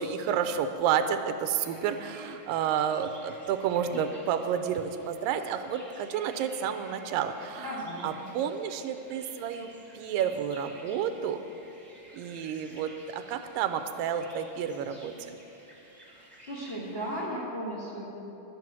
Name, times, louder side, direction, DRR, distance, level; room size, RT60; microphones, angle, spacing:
voice 1, 0.0-9.7 9.9-11.4 12.1-15.4, right 8 dB, 90° right, 8 dB, 2.3 m, -30 dB
sound 1, 1.6-17.2, right 1 dB, 5° right, 1.6 m, -53 dB
voice 2, 7.6-8.1 16.0-16.1 16.5-18.1, equal, 50° left, -5 dB, 0.7 m, -35 dB
11.5 x 9.2 x 6.0 m, 2.9 s
omnidirectional pair, 3.9 m